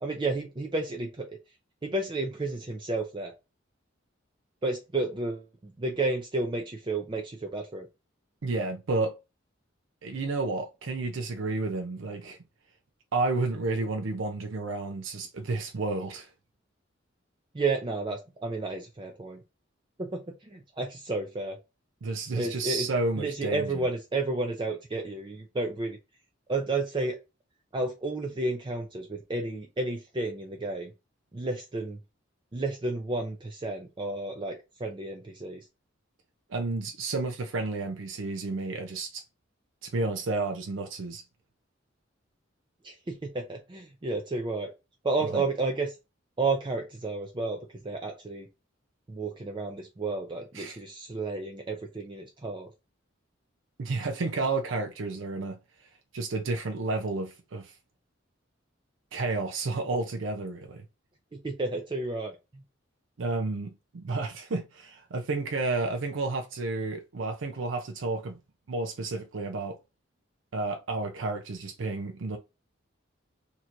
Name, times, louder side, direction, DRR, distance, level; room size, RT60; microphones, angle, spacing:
voice 1, 0.0-1.3 1.8-3.3 4.6-7.9 17.5-19.4 20.0-21.6 22.4-22.9 23.2-26.0 26.5-27.2 27.7-30.9 31.3-32.0 32.5-35.7 42.8-44.7 45.0-46.0 46.4-48.5 49.1-52.7 61.3-62.6, right 3 dB, 25° right, 0.5 m, -32 dB
voice 2, 8.4-9.2 10.0-12.4 13.1-16.3 22.0-23.7 36.5-39.2 39.8-41.2 45.3-45.4 50.5-50.8 53.8-55.6 56.1-57.7 59.1-60.8 63.2-68.4 68.7-69.8 70.5-72.4, right 3 dB, 75° right, 0.5 m, -31 dB
2.8 x 2.5 x 4.3 m
head